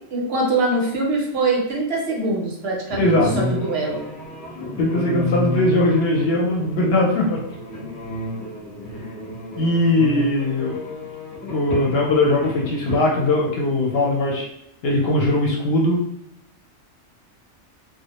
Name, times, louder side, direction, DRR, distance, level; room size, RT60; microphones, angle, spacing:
voice 1, 0.1-4.0, right 2 dB, 65° right, -1 dB, 0.8 m, -23 dB
sound 1, 2.9-13.0, left 1 dB, 20° left, 0.5 m, -31 dB
voice 2, 3.0-3.3 4.5-7.4 9.6-10.8 11.5-14.5 14.8-16.0, left 2 dB, 65° left, -1 dB, 0.7 m, -20 dB
2.1 x 2.0 x 2.8 m, 0.81 s
omnidirectional pair, 1.2 m